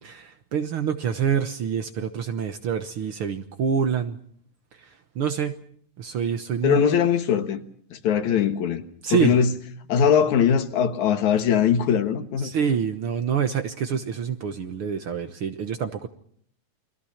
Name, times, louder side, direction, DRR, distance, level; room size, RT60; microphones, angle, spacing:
voice 1, 0.0-4.2 4.8-4.9 5.1-5.6 6.0-7.0 9.0-9.3 12.4-16.1, right 7 dB, 60° right, 1.7 m, -26 dB
voice 2, 6.6-7.6 7.9-8.8 9.1-9.5 9.9-12.5, left 8 dB, 75° left, 2.8 m, -21 dB
29.5 x 22.5 x 5.8 m
omnidirectional pair, 3.4 m